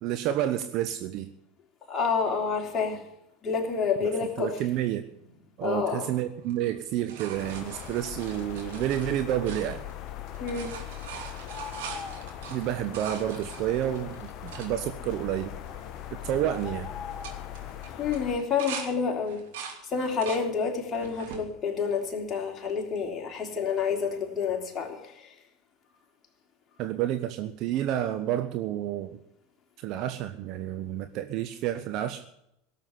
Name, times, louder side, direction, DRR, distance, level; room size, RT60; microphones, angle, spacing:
voice 1, 0.0-1.3 4.0-4.1 4.4-5.0 5.6-9.8 12.5-15.5 16.1-16.9 26.8-29.2 29.8-32.2, right 12 dB, 50° right, 8 dB, 0.9 m, -30 dB
voice 2, 1.9-3.0 3.4-4.6 5.6-6.1 10.4-10.7 18.0-19.4 19.9-25.1, left 5 dB, 30° left, 1 dB, 3.3 m, -28 dB
sound 1, 6.4-10.1 10.3-14.7 15.3-15.4 15.6-16.0 16.3-16.6 17.1-18.9 19.2-20.4 20.9-21.4 22.1-22.8 24.4-24.5, right 7 dB, 70° right, 2.8 m, -42 dB
sound 2, 7.3-18.4, left 10 dB, 45° left, 1.2 m, -40 dB
17.5 x 7.3 x 9.6 m, 0.81 s
hypercardioid pair, 80°, 0 cm